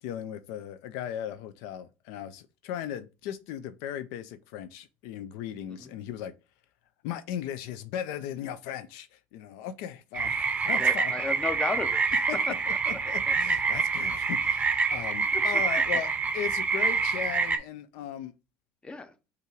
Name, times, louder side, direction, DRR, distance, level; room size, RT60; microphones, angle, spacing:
voice 1, 0.0-6.3 7.0-11.1 12.3-12.4 12.9-18.3, left 10 dB, 80° left, 0.3 m, -37 dB
sound 1, 10.1-17.6, right 5 dB, 25° right, 0.6 m, -26 dB
voice 2, 10.6-12.0 12.7-13.3 15.3-15.4 18.8-19.1, left 3 dB, 20° left, 0.7 m, -35 dB
5.4 x 2.5 x 3.0 m
supercardioid pair, 95°, 5 cm